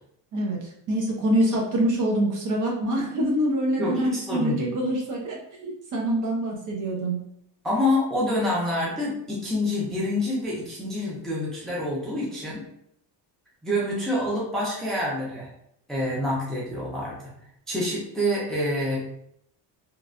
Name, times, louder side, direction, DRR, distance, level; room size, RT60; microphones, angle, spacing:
voice 1, 0.9-7.2, right 1 dB, 45° right, -1 dB, 0.7 m, -25 dB
voice 2, 3.8-4.7 7.6-12.6 13.6-15.5 15.9-17.3 17.7-19.0, left 1 dB, ahead, -6 dB, 0.5 m, -27 dB
3.1 x 2.4 x 2.4 m, 0.71 s
cardioid pair, 170°, 43 cm